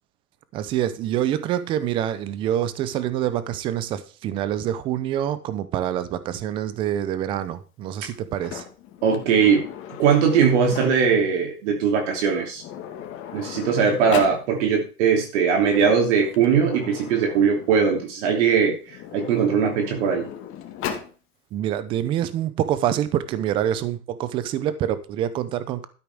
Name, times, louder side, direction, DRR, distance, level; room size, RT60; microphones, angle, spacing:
voice 1, 0.5-8.7 21.5-25.9, right 11 dB, 10° right, 14 dB, 0.5 m, -26 dB
Sliding door, 8.4-11.2 12.2-12.3 12.5-14.4 15.5-18.1 18.8-21.1, left 9 dB, 25° left, 1.7 m, -37 dB
voice 2, 9.0-9.6 10.0-12.6 13.3-18.8 19.1-20.3, right 6 dB, 45° right, 2 dB, 3.0 m, -20 dB
12.5 x 10.0 x 3.5 m, 0.36 s
hypercardioid pair, 130°, 47 cm